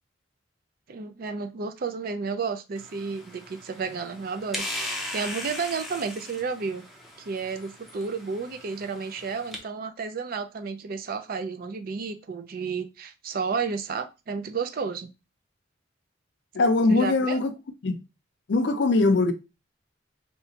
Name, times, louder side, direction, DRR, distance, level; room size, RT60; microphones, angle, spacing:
voice 1, 0.9-6.8 7.2-15.1 16.9-17.4, right 5 dB, 50° right, 0.4 m, -32 dB
sound 1, 2.8-9.6, left 1 dB, ahead, 0.6 m, -38 dB
voice 2, 16.5-17.5 17.8-18.0 18.5-19.3, left 3 dB, 65° left, 0.5 m, -21 dB
3.2 x 2.8 x 2.7 m
head